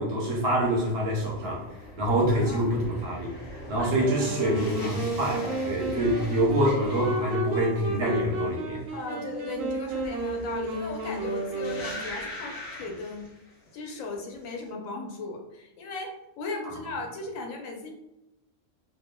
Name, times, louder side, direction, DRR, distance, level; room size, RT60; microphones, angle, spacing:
voice 1, 0.0-1.6 2.0-3.3 3.7-8.8, right 1 dB, 55° right, -2 dB, 0.8 m, -26 dB
sound 1, 0.6-13.7 14.0-14.6, left 1 dB, 60° left, 0.9 m, -42 dB
voice 2, 2.3-2.7 3.8-4.0 8.9-13.3 13.7-17.9, left 3 dB, 90° left, 1 dB, 1.1 m, -37 dB
sound 2, 3.9-12.3, right 2 dB, 85° right, 1.1 m, -32 dB
3.3 x 2.2 x 2.2 m, 0.91 s
omnidirectional pair, 1.4 m